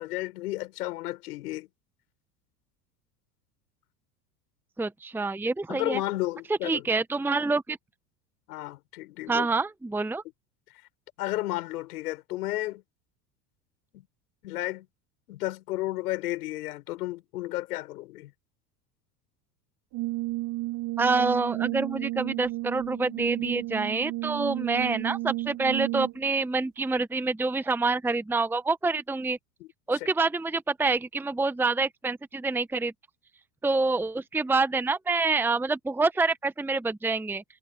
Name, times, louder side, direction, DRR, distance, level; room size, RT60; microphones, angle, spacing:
voice 1, 0.0-1.7 5.7-6.9 8.5-9.5 11.2-12.8 13.9-14.1 14.4-14.9 15.3-18.3 29.6-30.0, left 17 dB, 75° left, 6.6 m, -33 dB
voice 2, 4.8-6.0 6.6-7.8 9.3-10.2 21.0-29.4 29.9-32.9 33.6-37.4, right 3 dB, 5° right, 0.9 m, -27 dB
Brass instrument, 19.9-26.3, right 19 dB, 55° right, 3.1 m, -32 dB
hypercardioid pair, 85°, 46 cm